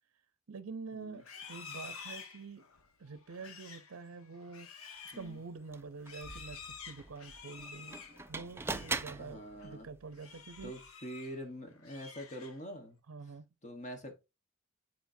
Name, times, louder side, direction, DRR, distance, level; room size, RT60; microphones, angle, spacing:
voice 1, 0.5-2.7 3.0-4.7 5.1-8.0 8.3-10.7 13.1-13.5, right 4 dB, 75° right, 0.6 m, -46 dB
Livestock farm animals working animals, 1.2-9.1 9.4-9.7 10.1-11.4 11.7-12.8, left 5 dB, 75° left, 1.0 m, -50 dB
sound 1, 5.2-5.3 5.7-10.9, right 3 dB, 10° right, 0.4 m, -43 dB
voice 2, 9.1-9.9 10.6-13.0 13.6-14.1, equal, 35° left, 1.2 m, -45 dB
9.3 x 4.5 x 2.6 m
head